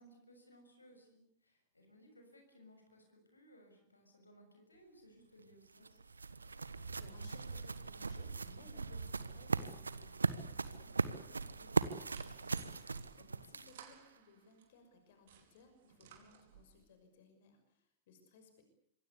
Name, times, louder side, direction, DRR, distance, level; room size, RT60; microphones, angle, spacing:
voice 1, 0.0-6.0 10.8-11.0 13.2-13.7, equal, 80° left, 4 dB, 6.7 m, -62 dB
sound 1, 5.4-13.9, right 4 dB, 75° right, 1.3 m, -39 dB
voice 2, 7.0-18.6, left 3 dB, 55° left, 7 dB, 6.0 m, -63 dB
sound 2, 12.0-14.7 15.1-16.8, right 9 dB, 55° right, 4.6 m, -60 dB
26.0 x 24.5 x 8.3 m, 0.66 s
figure-of-eight pair, 90°, 0 cm